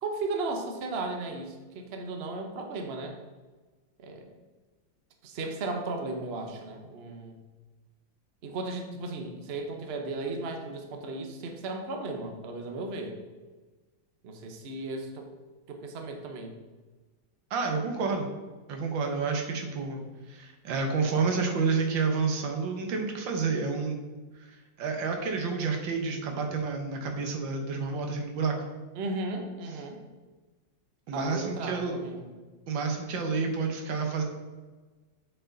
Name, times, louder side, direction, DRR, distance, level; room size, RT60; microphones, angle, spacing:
voice 1, 0.0-3.1 4.0-4.3 5.2-7.4 8.4-13.1 14.2-15.2 15.7-16.6 28.9-30.0 31.1-32.2, right 2 dB, 45° right, 3 dB, 0.8 m, -35 dB
voice 2, 17.5-18.3 18.7-20.0 20.3-24.0 24.8-28.5 31.1-31.9 32.7-34.2, right 4 dB, 75° right, 3 dB, 1.7 m, -29 dB
8.0 x 4.7 x 3.9 m, 1.3 s
omnidirectional pair, 2.1 m